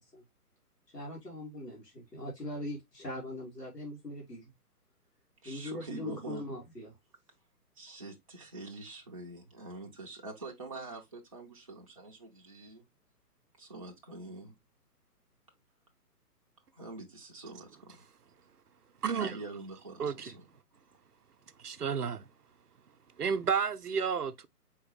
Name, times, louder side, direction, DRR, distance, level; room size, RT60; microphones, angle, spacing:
voice 1, 0.9-4.5 5.4-7.0, left 1 dB, 85° left, 2.7 m, -41 dB
voice 2, 5.4-6.4 7.8-12.9 13.6-14.6 16.7-18.1 19.2-20.5, right 2 dB, 25° right, 0.5 m, -45 dB
voice 3, 19.0-19.4 20.0-20.3 21.6-22.2 23.2-24.5, right 6 dB, 75° right, 0.7 m, -31 dB
4.7 x 3.7 x 3.0 m
figure-of-eight pair, 135°, 47 cm